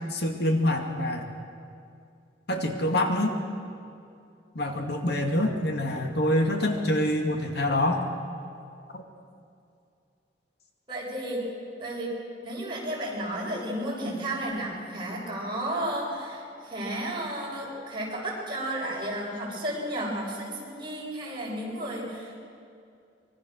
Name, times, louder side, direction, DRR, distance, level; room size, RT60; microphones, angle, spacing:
voice 1, 0.1-1.3 2.5-3.3 4.5-8.0 8.9-9.0, left 1 dB, 65° left, 3 dB, 2.3 m, -26 dB
voice 2, 10.9-11.5 11.8-12.1 12.4-22.3, right 1 dB, 30° right, -4 dB, 6.8 m, -33 dB
25.0 x 23.5 x 6.5 m, 2.4 s
head